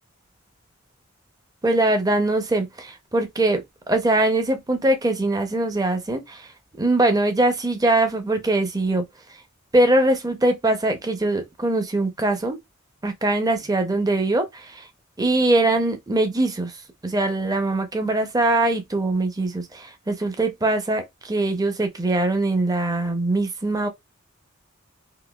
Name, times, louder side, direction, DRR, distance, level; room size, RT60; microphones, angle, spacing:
voice 1, 1.6-6.5 6.8-9.0 9.7-12.6 13.0-14.9 15.2-16.7 17.0-23.9, right 2 dB, 20° right, 0.5 m, -22 dB
3.8 x 2.6 x 2.2 m
head